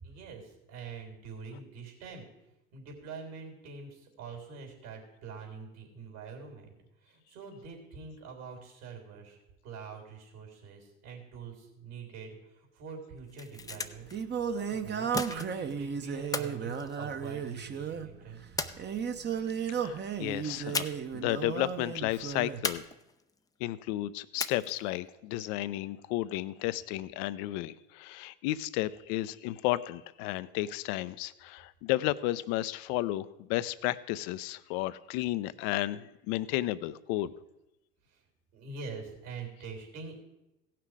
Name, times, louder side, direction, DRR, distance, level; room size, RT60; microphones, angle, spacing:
voice 1, 0.0-2.3 2.7-6.8 7.0-9.4 9.6-14.1 14.5-18.4 38.5-40.2, right 4 dB, 65° right, 3 dB, 3.5 m, -45 dB
sound 1, 13.2-14.2 15.1-15.8 16.3-17.6 18.6-19.3 20.7-21.2 21.5-21.6 22.6-23.4 24.4-24.9, left 4 dB, 10° left, 0.5 m, -36 dB
Singing, 13.6-22.6, right 7 dB, 25° right, 0.9 m, -35 dB
voice 2, 19.7-20.9 21.1-22.8 23.6-37.3, left 16 dB, 55° left, 16 dB, 0.6 m, -33 dB
16.5 x 5.9 x 4.8 m, 0.94 s
hypercardioid pair, 80°, 40 cm